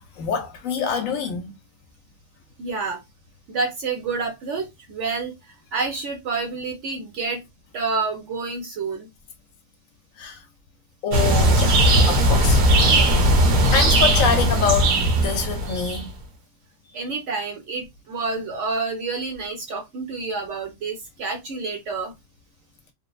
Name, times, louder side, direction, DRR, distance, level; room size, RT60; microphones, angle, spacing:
voice 1, 0.0-1.5 10.2-10.4 11.0-11.8 12.1-12.6 13.3-13.4 13.7-16.1, left 6 dB, 70° left, 0.9 m, -25 dB
voice 2, 2.6-3.0 3.5-7.4 7.7-9.1 16.9-22.1, right 4 dB, 60° right, 1.0 m, -28 dB
sound 1, 11.1-16.1, right 1 dB, 75° right, 1.3 m, -18 dB
3.0 x 2.1 x 2.3 m
omnidirectional pair, 1.6 m